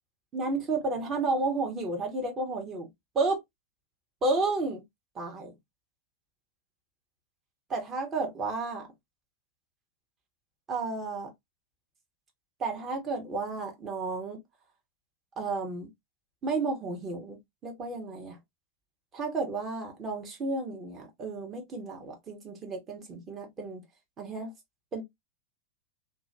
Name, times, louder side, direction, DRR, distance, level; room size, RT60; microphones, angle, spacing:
voice 1, 0.3-2.9 3.1-3.4 4.2-4.8 5.1-5.5 7.7-8.9 10.7-11.3 12.6-14.4 15.4-15.9 16.4-17.4 17.6-18.4 19.1-23.8 24.2-24.5 24.9-25.0, right 3 dB, 25° right, 1.1 m, -32 dB
2.8 x 2.5 x 2.5 m
figure-of-eight pair, 90°, 0 cm